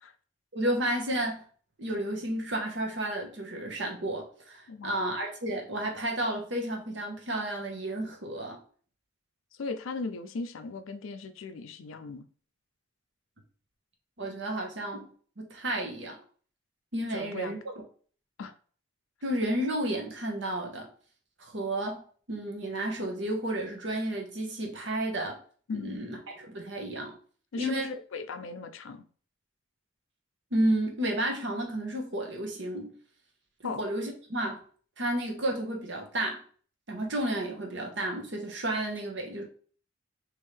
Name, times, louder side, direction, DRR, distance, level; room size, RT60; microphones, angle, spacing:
voice 1, 0.5-1.4 1.8-8.6 14.2-15.1 15.4-16.2 16.9-17.7 19.2-20.9 21.4-22.0 22.3-25.4 25.7-27.1 27.6-27.9 30.5-32.9 33.6-34.6 35.0-36.4 36.9-39.5, right 1 dB, 60° right, 1.0 m, -32 dB
voice 2, 4.7-5.0 9.6-12.3 17.1-17.5 18.4-18.5 25.7-26.1 27.5-29.0 33.6-33.8, left 4 dB, 75° left, 0.4 m, -37 dB
3.6 x 3.0 x 3.2 m
head